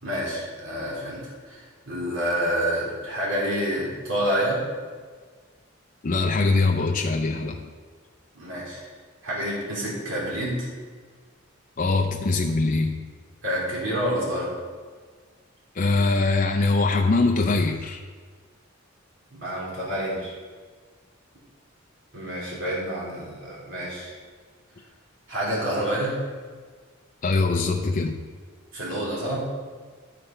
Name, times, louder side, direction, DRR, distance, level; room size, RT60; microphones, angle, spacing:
voice 1, 0.0-4.6 8.3-8.9 9.2-10.7 13.4-14.5 19.3-20.3 22.1-24.1 25.3-26.2 28.7-29.4, equal, 65° right, -6 dB, 2.8 m, -28 dB
voice 2, 6.0-7.7 11.8-13.1 15.7-18.0 27.2-28.2, left 3 dB, 40° left, 2 dB, 0.5 m, -22 dB
12.0 x 5.0 x 4.4 m, 1.5 s
head